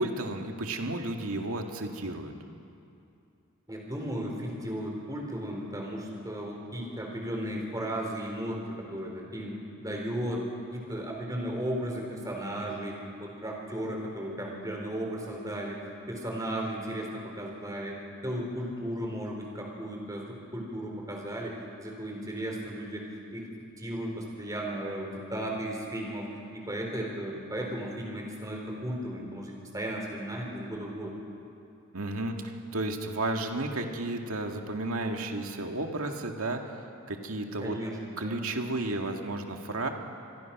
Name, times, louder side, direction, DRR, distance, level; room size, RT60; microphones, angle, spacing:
voice 1, 0.0-2.3 31.9-36.8 37.1-37.8 38.2-39.9, right 2 dB, 85° right, 3 dB, 2.1 m, -32 dB
voice 2, 3.7-23.0 23.3-23.5 23.8-31.1 37.6-38.5, right 1 dB, 15° right, 0 dB, 4.2 m, -35 dB
27.0 x 22.5 x 6.0 m, 2.6 s
head